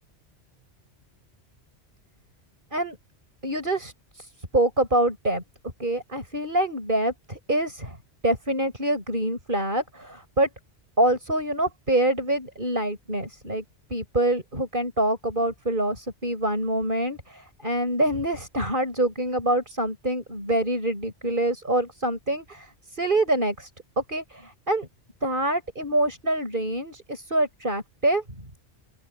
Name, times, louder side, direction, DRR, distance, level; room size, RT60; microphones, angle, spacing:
voice 1, 3.4-5.4 5.8-8.0 8.2-10.5 11.0-13.6 13.9-23.7 24.0-24.9 25.2-28.2, right 1 dB, 50° right, 7.5 m, -26 dB
open air
omnidirectional pair, 1.1 m